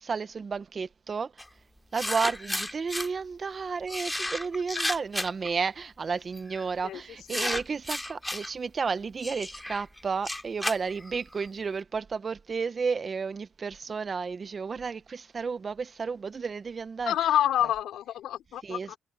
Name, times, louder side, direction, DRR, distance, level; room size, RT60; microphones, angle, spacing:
voice 1, 0.0-1.3 1.9-17.1 18.7-19.0, right 5 dB, 40° right, 0.9 m, -32 dB
sound 1, 1.4-1.5 1.9-3.1 3.9-5.5 6.3-6.6 7.3-8.5 9.2-11.5, left 1 dB, 10° left, 2.8 m, -33 dB
voice 2, 6.8-7.5 17.0-19.0, left 12 dB, 80° left, 4.4 m, -28 dB
cardioid pair, 90°, 0 cm